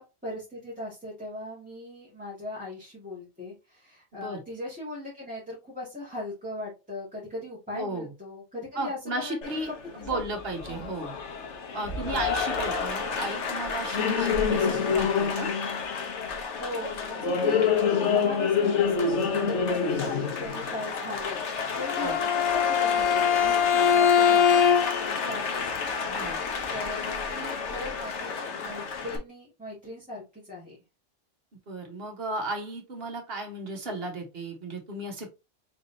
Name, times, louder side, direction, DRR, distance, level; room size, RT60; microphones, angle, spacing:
voice 1, 0.0-9.6 10.0-10.2 10.7-11.0 12.0-12.3 16.6-25.7 26.7-30.8, left 2 dB, 5° right, -8 dB, 1.7 m, -39 dB
voice 2, 7.7-8.1 8.7-11.1 11.7-15.5 22.0-22.1 26.0-26.4 31.7-35.3, right 2 dB, 55° right, 2 dB, 1.4 m, -34 dB
Applause, 9.4-29.2, left 6 dB, 75° left, 1.2 m, -29 dB
Bowed string instrument, 21.8-25.2, left 8 dB, 45° left, 0.5 m, -22 dB
4.1 x 3.7 x 2.7 m, 0.27 s
omnidirectional pair, 1.2 m